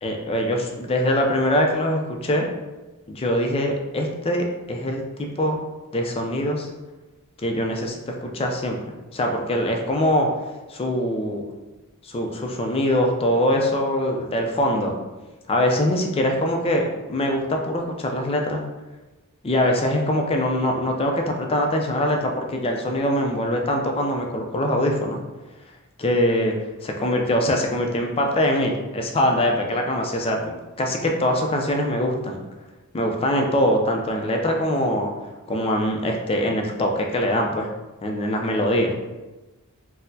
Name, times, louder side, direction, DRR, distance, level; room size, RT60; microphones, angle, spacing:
voice 1, 0.0-2.5 3.1-5.6 5.9-6.7 7.4-10.3 10.7-11.4 12.0-15.0 15.5-18.6 19.4-25.2 26.0-26.5 26.8-32.4 32.9-35.1 35.5-37.7 38.0-38.9, left 1 dB, 25° left, 2 dB, 0.4 m, -23 dB
4.1 x 2.0 x 2.6 m, 1.1 s
head